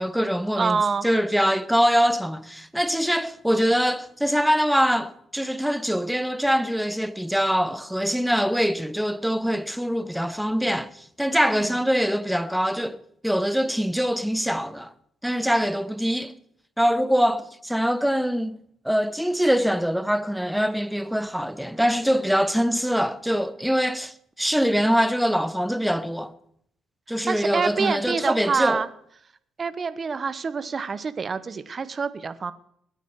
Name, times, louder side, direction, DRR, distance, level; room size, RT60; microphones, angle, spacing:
voice 1, 0.0-0.8 1.0-13.0 13.2-14.9 15.2-16.3 16.8-18.6 18.8-26.3 27.1-28.9, equal, ahead, 0.9 m, -23 dB
voice 2, 0.5-1.1 11.5-11.7 27.3-28.9 29.6-32.5, right 5 dB, 40° right, 1.0 m, -26 dB
21.0 x 9.2 x 4.8 m
cardioid pair, 90°, 0 cm